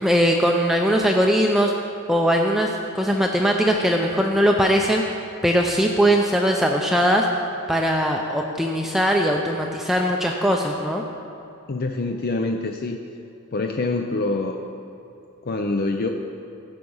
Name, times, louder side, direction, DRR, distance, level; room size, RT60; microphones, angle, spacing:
voice 1, 0.0-1.7 2.1-7.3 7.7-11.0, equal, ahead, 1 dB, 0.5 m, -20 dB
voice 2, 11.7-13.0 13.5-14.6 15.4-16.1, left 2 dB, 45° left, 4 dB, 0.5 m, -25 dB
13.5 x 7.8 x 5.5 m, 2.8 s
head